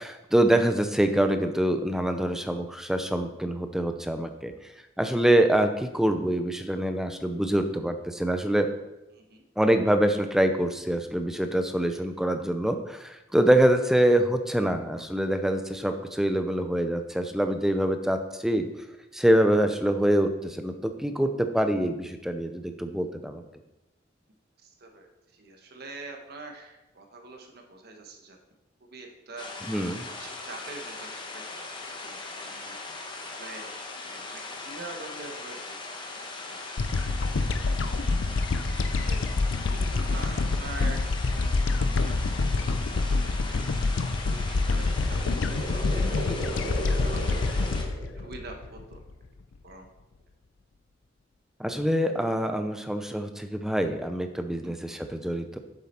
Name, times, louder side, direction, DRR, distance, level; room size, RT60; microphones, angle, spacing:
voice 1, 0.0-4.5 5.0-8.7 9.6-18.7 19.1-23.4 29.7-30.1 51.6-55.6, right 1 dB, ahead, 7 dB, 0.5 m, -25 dB
voice 2, 24.6-25.1 25.3-28.4 28.9-31.1 31.3-31.7 32.0-32.7 33.3-33.7 34.0-35.8 36.1-36.6 37.3-37.6 39.0-39.2 39.7-43.2 43.5-44.8 45.1-47.5 48.1-49.0 49.6-49.9 54.6-55.0, right 2 dB, 55° right, 2 dB, 1.1 m, -45 dB
sound 1, 29.4-47.9, left 3 dB, 25° left, 1.1 m, -39 dB
sound 2, 36.8-49.3, left 3 dB, 80° left, 0.5 m, -27 dB
sound 3, 44.4-48.7, right 1 dB, 30° right, 2.9 m, -38 dB
7.5 x 7.2 x 4.4 m, 0.96 s
head